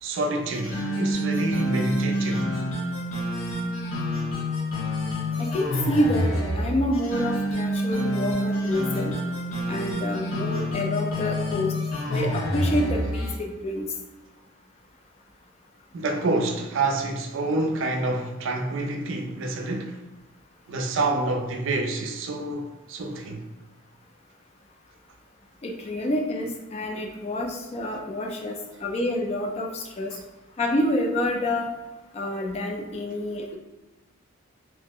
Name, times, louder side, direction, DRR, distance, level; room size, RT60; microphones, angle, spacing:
voice 1, 0.0-2.5 10.6-10.7 15.9-20.0 20.7-23.5 30.1-30.2, right 2 dB, 65° right, 0.4 m, -28 dB
sound 1, 0.5-13.4, equal, 70° left, 0.8 m, -27 dB
voice 2, 5.4-9.1 9.7-11.7 12.1-13.9 25.6-28.5 28.8-30.1 30.6-31.7 32.1-33.6, left 1 dB, 30° left, 0.3 m, -28 dB
2.8 x 2.0 x 3.6 m
head